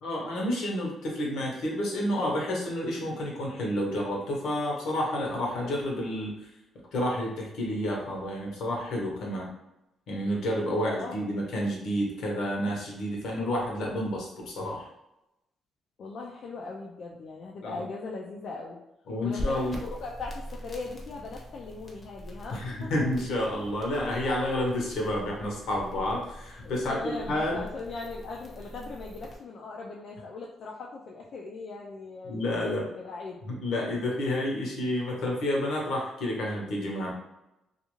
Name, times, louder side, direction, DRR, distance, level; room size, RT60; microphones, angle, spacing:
voice 1, 0.0-6.5 6.9-9.5 10.1-14.9 17.6-17.8 19.1-19.8 22.5-27.6 32.2-32.8 33.5-37.1, left 1 dB, 80° left, -1 dB, 0.8 m, -30 dB
voice 2, 10.7-11.3 16.0-18.8 19.2-22.9 26.6-33.4, left 3 dB, 60° left, -2 dB, 0.4 m, -39 dB
sound 1, 19.4-29.3, left 1 dB, 35° left, 0.7 m, -42 dB
2.4 x 2.3 x 3.0 m, 0.90 s
cardioid pair, 90°, 0 cm